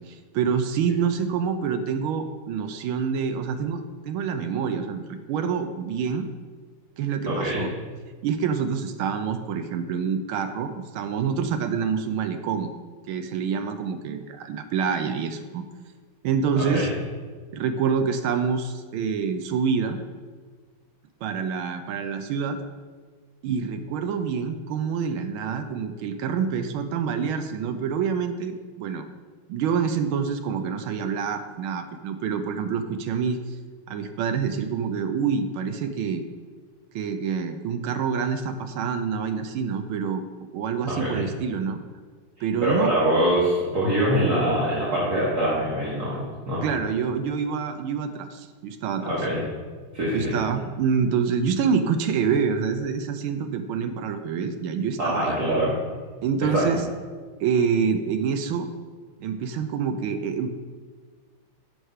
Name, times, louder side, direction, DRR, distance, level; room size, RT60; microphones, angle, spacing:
voice 1, 0.1-6.3 7.0-7.7 8.2-12.7 13.1-15.6 16.2-16.9 17.5-20.0 21.2-22.6 23.4-29.1 29.5-33.6 33.9-36.2 36.9-40.3 40.5-41.8 42.4-42.9 46.6-49.0 50.1-55.4 56.2-56.8 57.4-58.7 59.2-60.5, right 6 dB, 80° right, 8 dB, 1.5 m, -26 dB
voice 2, 7.3-7.6 16.6-16.9 40.9-41.2 42.6-46.6 49.0-49.4 49.9-50.3 55.0-55.7 56.5-56.6, right 1 dB, 50° right, -7 dB, 2.2 m, -24 dB
7.8 x 6.5 x 5.5 m, 1.5 s
omnidirectional pair, 2.3 m